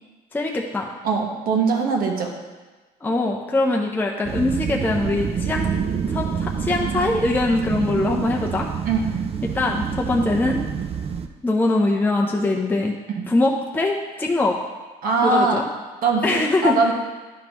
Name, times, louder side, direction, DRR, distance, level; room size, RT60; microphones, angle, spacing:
voice 1, 0.3-0.9 3.0-5.7 6.1-8.7 9.4-10.6 11.4-12.9 13.2-14.6 15.2-15.7 16.2-16.8, left 2 dB, 10° left, -1 dB, 0.7 m, -22 dB
voice 2, 1.0-2.3 8.9-9.1 15.0-15.6 16.0-16.9, right 4 dB, 60° right, 0 dB, 1.4 m, -21 dB
sound 1, 4.3-11.3, right 7 dB, 35° right, 0.5 m, -27 dB
11.0 x 5.1 x 3.0 m, 1.3 s
cardioid pair, 110°, 17 cm